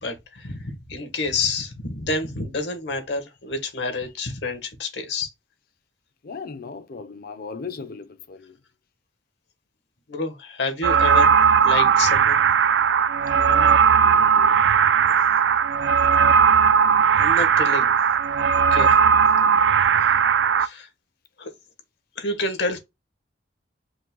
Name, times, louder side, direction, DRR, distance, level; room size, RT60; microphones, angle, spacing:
voice 1, 0.0-5.3 10.1-11.3 11.6-12.4 15.1-15.2 17.2-17.9 18.5-19.0 20.0-20.1 20.6-20.9 21.4-21.5 22.2-22.8, left 3 dB, 75° left, 1.3 m, -29 dB
voice 2, 6.2-8.6 13.3-14.5, left 4 dB, 55° left, 0.7 m, -37 dB
sound 1, 10.8-20.7, right 7 dB, 80° right, 0.4 m, -18 dB
5.1 x 2.2 x 3.8 m
head